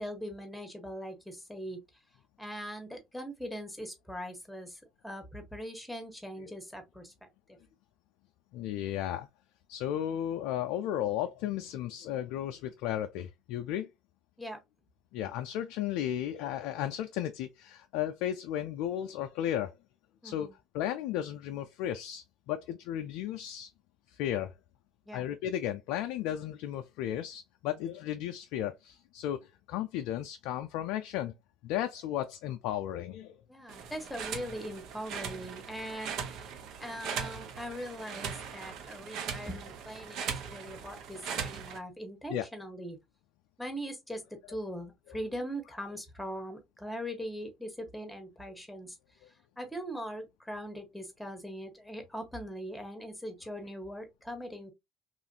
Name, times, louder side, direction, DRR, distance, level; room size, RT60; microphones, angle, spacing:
voice 1, 0.0-1.8 2.4-7.3 14.4-14.6 20.2-20.6 25.1-25.3 33.5-36.5 36.8-43.0 43.6-49.0 49.6-54.7, equal, 5° left, 1.2 m, -41 dB
voice 2, 8.5-9.3 9.7-13.9 15.1-19.8 20.2-20.5 20.7-23.7 24.1-24.5 25.1-31.3 31.6-33.4 42.3-42.4, left 11 dB, 80° left, 0.3 m, -34 dB
sound 1, 33.7-41.8, right 7 dB, 70° right, 0.6 m, -39 dB
3.0 x 2.4 x 2.7 m
supercardioid pair, 75°, 0 cm